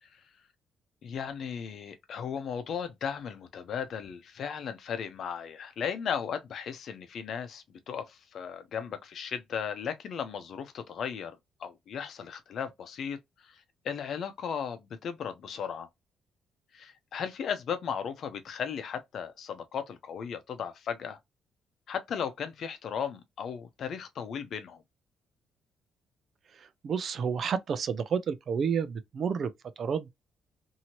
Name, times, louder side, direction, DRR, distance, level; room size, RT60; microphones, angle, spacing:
voice 1, 1.0-15.9 16.7-21.2 21.9-24.8, left 7 dB, 65° left, 0.7 m, -36 dB
voice 2, 26.6-29.5 29.8-30.1, right 6 dB, 55° right, 0.5 m, -30 dB
2.8 x 2.7 x 2.8 m
cardioid pair, 90°, 0 cm